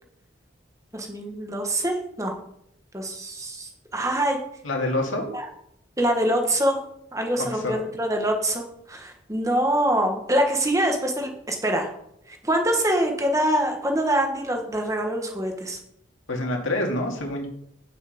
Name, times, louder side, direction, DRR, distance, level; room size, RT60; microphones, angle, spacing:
voice 1, 0.9-2.3 2.9-4.4 5.3-5.5 6.0-6.8 7.1-11.9 12.3-15.8, right 1 dB, 15° right, 3 dB, 1.4 m, -24 dB
voice 2, 4.6-5.3 7.4-7.8 16.3-17.5, left 1 dB, 85° left, 1 dB, 2.3 m, -27 dB
9.3 x 6.8 x 5.3 m, 0.74 s
head